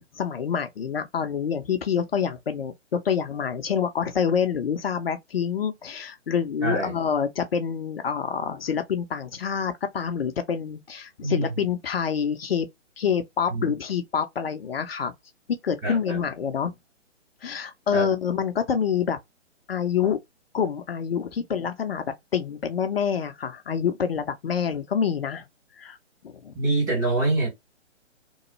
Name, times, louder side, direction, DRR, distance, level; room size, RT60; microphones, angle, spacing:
voice 1, 0.0-12.7 13.0-15.1 15.6-16.8 17.4-19.2 19.7-20.2 20.5-25.5 25.8-26.0 26.2-26.5, left 7 dB, 55° left, 0.6 m, -27 dB
voice 2, 6.6-7.0 11.2-11.7 13.5-13.7 15.8-16.2 17.9-18.1 26.5-27.5, right 2 dB, 10° right, 0.7 m, -25 dB
3.0 x 2.2 x 3.0 m
figure-of-eight pair, 135°, 37 cm